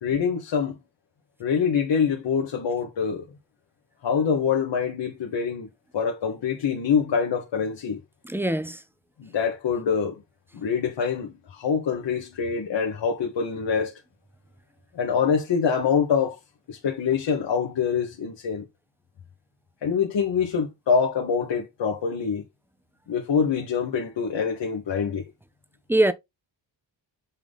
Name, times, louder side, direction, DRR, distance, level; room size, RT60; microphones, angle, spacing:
voice 1, 0.0-0.8 1.4-3.2 4.0-5.7 5.9-8.0 9.2-10.1 10.5-13.9 14.9-16.3 16.7-18.6 19.8-22.4 23.1-25.2, left 6 dB, 70° left, 1.5 m, -25 dB
voice 2, 8.2-8.8 25.9-26.1, right 1 dB, 5° right, 0.6 m, -22 dB
7.3 x 3.9 x 3.6 m
wide cardioid pair, 120°, 44 cm